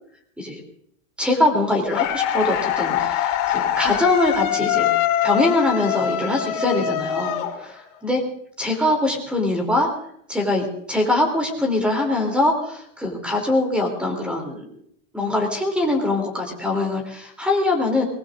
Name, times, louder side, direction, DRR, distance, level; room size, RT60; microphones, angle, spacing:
voice 1, 1.2-4.9 5.2-8.2 8.6-9.9 10.3-14.6 15.1-18.0, left 2 dB, 5° right, 2 dB, 3.1 m, -22 dB
sound 1, 1.9-8.0, left 10 dB, 50° left, 3.1 m, -23 dB
23.5 x 20.0 x 2.6 m, 0.69 s
supercardioid pair, 155°, 43 cm